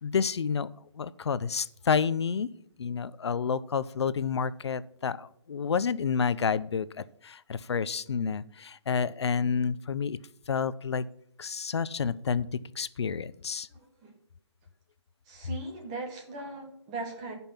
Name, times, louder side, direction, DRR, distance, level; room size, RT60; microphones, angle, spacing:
voice 1, 0.0-0.7 1.0-2.5 2.8-10.2 10.5-11.0 11.4-12.5 12.8-13.7, left 6 dB, 70° left, 17 dB, 0.5 m, -29 dB
voice 2, 15.3-17.3, right 3 dB, 15° right, 1 dB, 1.3 m, -38 dB
10.5 x 5.4 x 5.7 m, 0.67 s
hypercardioid pair, 175°, 15 cm